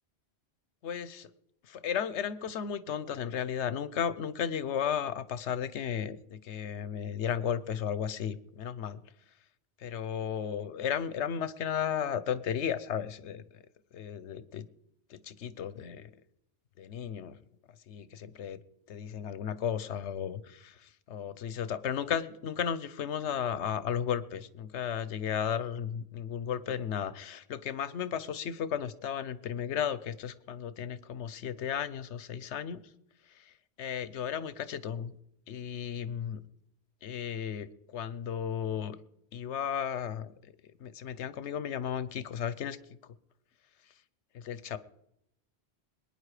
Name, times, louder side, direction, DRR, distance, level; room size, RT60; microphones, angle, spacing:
voice 1, 0.8-1.3 1.6-9.0 9.8-13.6 13.9-14.6 15.1-16.1 16.8-17.4 17.9-18.6 18.9-32.9 33.3-35.1 35.5-36.4 37.0-39.0 39.3-40.3 40.8-42.8 44.3-44.8, left 8 dB, 85° left, 16 dB, 1.1 m, -34 dB
21.5 x 9.7 x 4.9 m, 0.82 s
omnidirectional pair, 1.1 m